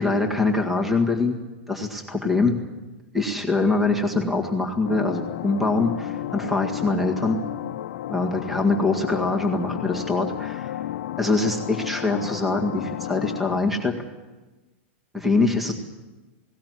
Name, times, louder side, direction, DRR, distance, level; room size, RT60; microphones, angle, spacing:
voice 1, 0.0-1.4 1.7-2.6 3.1-7.4 8.1-10.8 11.2-14.0 15.1-15.7, left 3 dB, ahead, 3 dB, 1.9 m, -23 dB
sound 1, 4.8-13.6, left 13 dB, 65° left, 0.9 m, -32 dB
19.0 x 18.0 x 9.5 m, 1.1 s
supercardioid pair, 165°, 7 cm